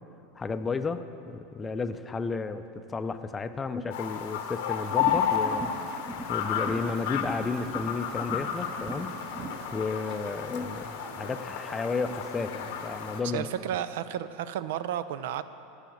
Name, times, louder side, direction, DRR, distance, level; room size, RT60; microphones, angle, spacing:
voice 1, 0.4-5.7 6.3-9.1 9.7-13.5, left 4 dB, 20° left, 10 dB, 0.4 m, -33 dB
sound 1, 3.9-13.2, left 8 dB, 75° left, 0.9 m, -32 dB
sound 2, 4.8-9.6, right 1 dB, 15° right, 0.8 m, -39 dB
Boat Water vehicle, 8.7-13.7, right 4 dB, 45° right, 1.4 m, -48 dB
voice 2, 13.3-15.4, right 10 dB, 75° right, 14 dB, 0.4 m, -32 dB
9.9 x 5.7 x 8.5 m, 2.8 s
supercardioid pair, 125°, 0 cm